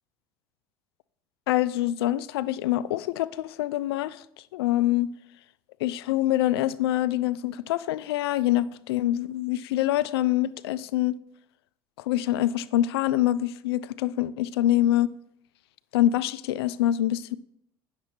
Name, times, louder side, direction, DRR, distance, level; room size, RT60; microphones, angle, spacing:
voice 1, 1.5-4.2 4.5-5.1 5.8-11.1 12.0-15.1 15.9-17.3, left 14 dB, 85° left, 0.4 m, -25 dB
9.4 x 6.7 x 4.4 m
hypercardioid pair, 75°, 13 cm